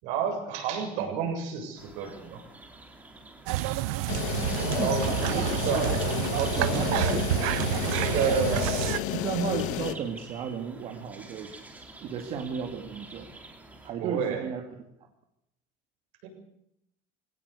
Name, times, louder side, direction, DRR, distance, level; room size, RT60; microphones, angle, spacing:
voice 1, 0.0-2.4 4.6-6.0 6.4-7.1 8.1-8.7 14.0-14.5 16.2-16.3, right 7 dB, 65° right, 3 dB, 7.4 m, -31 dB
sound 1, 1.7-13.9, right 2 dB, 10° right, 2.9 m, -47 dB
sound 2, 3.5-9.0, right 15 dB, 85° right, 1.1 m, -29 dB
sound 3, 4.1-9.9, left 12 dB, 60° left, 1.9 m, -31 dB
voice 2, 6.6-7.5 9.1-11.6 12.0-13.3 13.8-14.6, right 6 dB, 40° right, 3 dB, 2.2 m, -34 dB
22.5 x 17.5 x 8.4 m, 0.78 s
cardioid pair, 175°, 14 cm